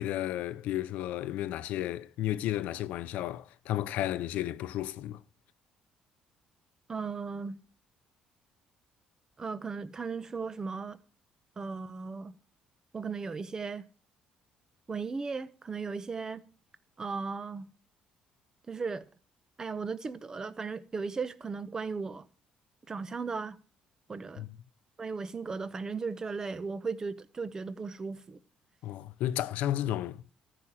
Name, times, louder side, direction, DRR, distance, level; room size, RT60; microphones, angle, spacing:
voice 1, 0.0-5.2 24.4-24.5 28.8-30.2, left 13 dB, 80° left, 0.6 m, -33 dB
voice 2, 6.9-7.6 9.4-11.0 11.6-12.3 12.9-13.9 14.9-16.4 17.0-17.7 18.7-19.0 19.6-22.3 22.9-23.6 24.1-24.4 25.0-28.4, right 4 dB, 25° right, 0.8 m, -36 dB
14.0 x 5.0 x 7.4 m
cardioid pair, 130°, 3 cm